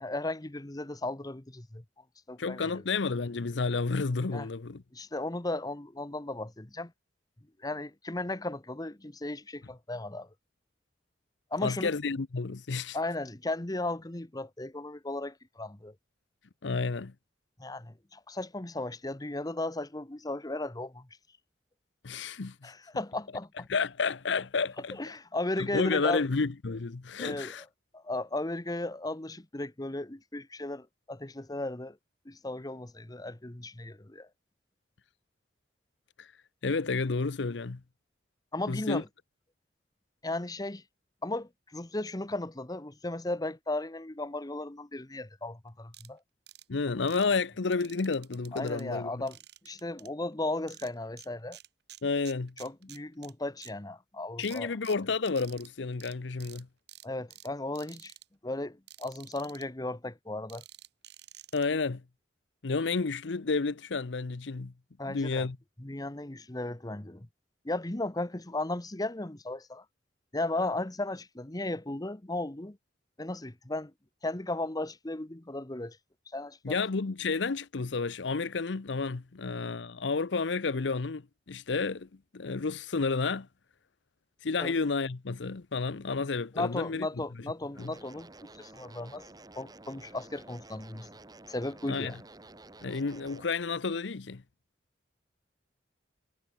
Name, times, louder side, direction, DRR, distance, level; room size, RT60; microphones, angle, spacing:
voice 1, 0.0-1.8 2.3-2.8 4.3-4.5 4.9-6.9 7.6-10.3 11.5-11.9 12.9-15.9 17.6-21.1 22.6-23.7 24.9-26.3 27.2-27.7 27.9-32.0 32.2-34.3 38.5-39.1 40.2-40.8 41.2-46.2 48.5-49.4 49.6-51.6 52.6-54.7 57.0-58.1 58.4-60.6 65.0-65.5 65.8-67.3 67.6-69.8 70.3-72.8 73.2-73.9 74.2-76.0 76.3-76.8 84.6-84.7 86.5-88.3 88.5-89.2 89.5-91.1 91.5-92.2, left 2 dB, 20° left, 1.1 m, -35 dB
voice 2, 2.4-4.8 11.6-13.0 16.6-17.1 22.0-22.7 23.7-25.0 25.6-27.6 36.2-36.3 36.6-37.8 38.7-39.0 46.7-49.1 52.0-52.5 54.4-56.7 61.5-62.0 62.6-64.7 65.1-65.6 76.6-82.1 82.3-83.5 84.4-87.1 87.8-87.9 91.9-92.1 92.8-94.4, left 4 dB, 75° left, 0.7 m, -31 dB
sound 1, 45.9-46.1 46.5-46.6 47.1-47.3 47.7-48.8 49.3-50.1 50.7-51.3 51.5-53.3 53.6-53.7 54.4-55.7 56.0-56.1 56.4-56.6 56.9-57.5 57.7-58.2 58.9-59.6 60.5-61.6, right 13 dB, 65° right, 7.1 m, -51 dB
sound 2, 87.7-93.5, right 2 dB, 20° right, 1.9 m, -51 dB
head